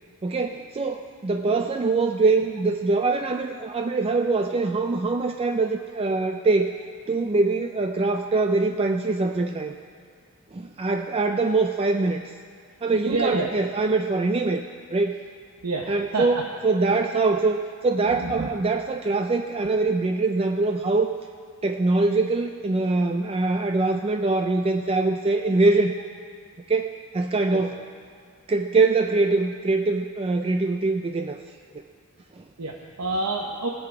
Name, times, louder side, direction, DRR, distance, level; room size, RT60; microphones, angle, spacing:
voice 1, 0.2-6.7 7.1-9.7 10.5-12.3 12.8-14.6 14.9-15.2 15.9-21.1 21.6-25.9 26.7-27.7 28.5-31.4 32.4-32.5, right 3 dB, 25° right, 5 dB, 0.4 m, -23 dB
voice 2, 13.0-13.5 15.6-16.4 18.1-18.5 27.5-27.6 32.6-33.7, right 3 dB, 80° right, 0 dB, 0.9 m, -28 dB
19.0 x 7.6 x 4.8 m, 2.2 s
head